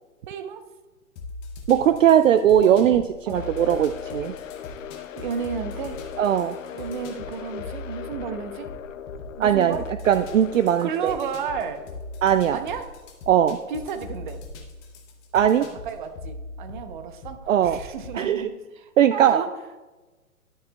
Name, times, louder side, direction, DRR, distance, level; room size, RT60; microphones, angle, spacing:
voice 1, 0.3-0.6 2.6-3.5 5.1-6.0 6.7-8.7 9.4-9.9 10.8-11.9 12.5-12.9 13.7-14.4 15.8-19.5, right 6 dB, 35° right, 9 dB, 0.8 m, -33 dB
sound 1, 1.2-18.3, left 2 dB, 15° left, 0.7 m, -41 dB
voice 2, 1.7-4.3 6.2-6.6 9.4-11.1 12.2-12.6 13.3-13.6 15.3-15.7 17.5-17.8 18.1-18.5 19.0-19.4, right 10 dB, 60° right, 11 dB, 0.5 m, -19 dB
sound 2, 3.3-13.4, left 9 dB, 60° left, 0.6 m, -39 dB
12.0 x 9.9 x 2.3 m, 1.2 s
figure-of-eight pair, 130°, 45 cm